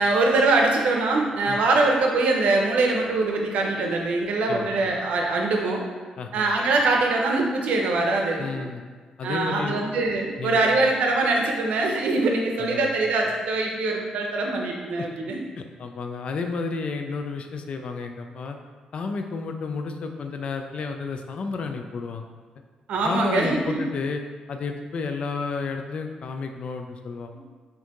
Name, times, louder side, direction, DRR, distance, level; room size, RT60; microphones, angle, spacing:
voice 1, 0.0-5.8 6.3-8.5 9.2-15.4 22.9-23.8, right 3 dB, 85° right, 1 dB, 0.6 m, -23 dB
voice 2, 6.2-6.5 8.4-8.8 9.2-9.8 10.4-10.7 12.6-12.9 15.0-15.1 15.6-18.6 18.9-22.2 23.0-24.2 24.5-27.3, left 4 dB, 55° left, 5 dB, 0.3 m, -31 dB
4.2 x 2.6 x 2.9 m, 1.5 s
cardioid pair, 110°, 2 cm